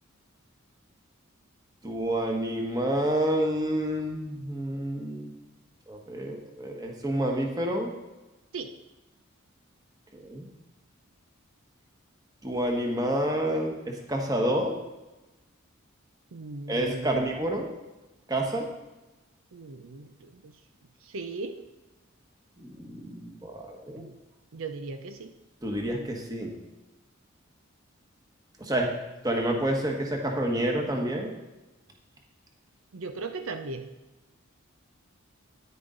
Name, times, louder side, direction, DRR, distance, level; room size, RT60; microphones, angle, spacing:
voice 1, 1.8-5.3 5.9-7.9 10.1-10.5 12.4-14.7 16.7-17.7 18.3-18.7 22.6-24.0 25.6-26.5 28.6-28.9 29.2-31.3, right 1 dB, 20° right, 1 dB, 1.3 m, -28 dB
voice 2, 16.3-17.2 19.5-20.1 21.1-21.6 24.0-24.1 24.5-25.3 32.9-33.9, right 3 dB, 75° right, 8 dB, 0.6 m, -37 dB
9.8 x 9.5 x 3.9 m, 1.1 s
head